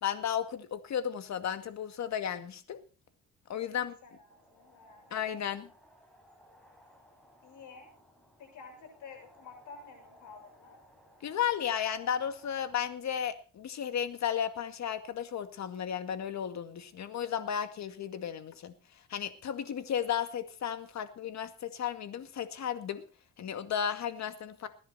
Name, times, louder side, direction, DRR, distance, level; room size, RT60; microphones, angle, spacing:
voice 1, 0.0-2.8 3.5-4.0 5.1-5.7 11.2-18.7 19.1-23.0 23.4-24.7, left 9 dB, 65° left, 10 dB, 2.1 m, -34 dB
voice 2, 3.7-5.1 7.4-7.9 8.4-10.8, left 4 dB, 80° left, 2 dB, 7.0 m, -51 dB
sound 1, 4.3-13.0, equal, 5° left, 7.5 m, -61 dB
20.5 x 10.0 x 4.3 m, 0.37 s
cardioid pair, 90°, 30 cm